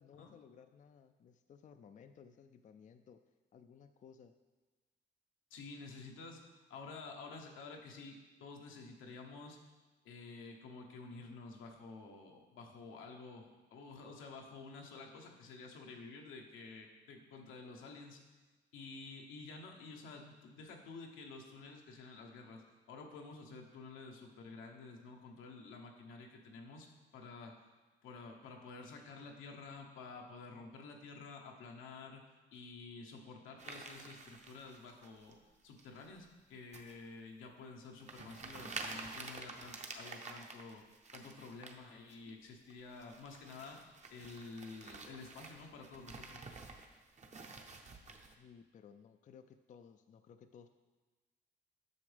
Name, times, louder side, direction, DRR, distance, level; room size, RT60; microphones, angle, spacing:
voice 1, 0.0-3.2 3.5-4.3 48.4-50.7, left 7 dB, 40° left, 9 dB, 0.4 m, -58 dB
voice 2, 5.5-6.4 6.7-9.6 10.0-18.2 18.7-26.9 27.1-27.6 28.0-32.2 32.5-35.4 35.6-40.8 41.1-46.4, left 4 dB, 85° left, 1 dB, 1.0 m, -51 dB
sound 1, 33.6-35.3 35.8-36.2 36.7-37.0 37.4-37.5 38.0-41.8 42.1-42.3 42.7-48.3, right 3 dB, 35° right, 0.8 m, -49 dB
8.5 x 6.2 x 3.4 m, 1.3 s
cardioid pair, 90°, 20 cm